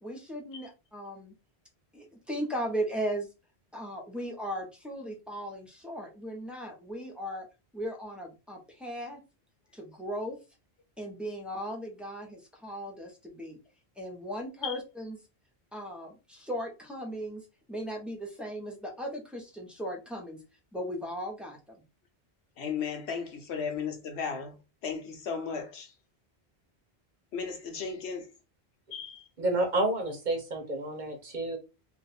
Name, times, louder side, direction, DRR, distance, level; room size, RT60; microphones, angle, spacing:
voice 1, 0.0-1.3 1.9-3.3 3.7-7.5 7.7-9.2 9.7-10.4 11.0-13.6 14.0-15.2 15.7-17.4 17.7-20.4 20.7-21.8, equal, ahead, 0.8 m, -37 dB
voice 2, 22.6-25.9 27.3-28.2 28.9-29.2, left 6 dB, 85° left, 1.1 m, -35 dB
voice 3, 29.4-31.6, right 2 dB, 50° right, 1.0 m, -29 dB
2.5 x 2.5 x 4.1 m
omnidirectional pair, 1.1 m